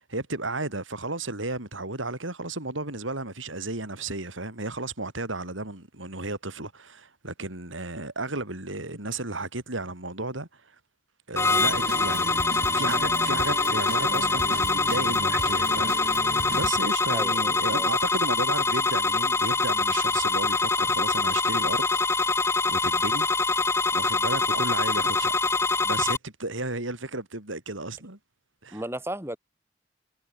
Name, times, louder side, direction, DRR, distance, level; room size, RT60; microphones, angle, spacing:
voice 1, 0.1-10.8 11.3-12.4 12.7-21.9 22.2-22.3 22.7-23.3 23.9-25.3 25.8-28.2 28.6-28.8, right 2 dB, 90° right, 5.5 m, -33 dB
sound 1, 11.4-26.2, left 3 dB, 15° left, 1.2 m, -24 dB
sound 2, 11.6-16.7, right 2 dB, 55° right, 2.5 m, -35 dB
voice 2, 17.1-17.9 28.7-29.4, right 1 dB, 15° right, 6.7 m, -34 dB
head